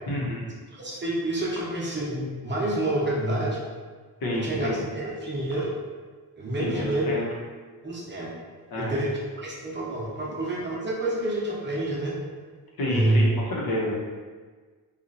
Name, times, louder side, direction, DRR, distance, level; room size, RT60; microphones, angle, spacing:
voice 1, 0.1-0.4 4.2-4.8 6.6-7.2 8.7-9.0 12.8-13.9, left 1 dB, 70° left, -4 dB, 0.9 m, -29 dB
voice 2, 0.8-3.6 4.3-5.7 6.4-7.2 7.8-8.3 8.7-9.1 9.4-12.1 12.9-13.3, right 1 dB, 30° right, -5 dB, 0.7 m, -28 dB
2.9 x 2.4 x 3.9 m, 1.5 s
wide cardioid pair, 140°, 37 cm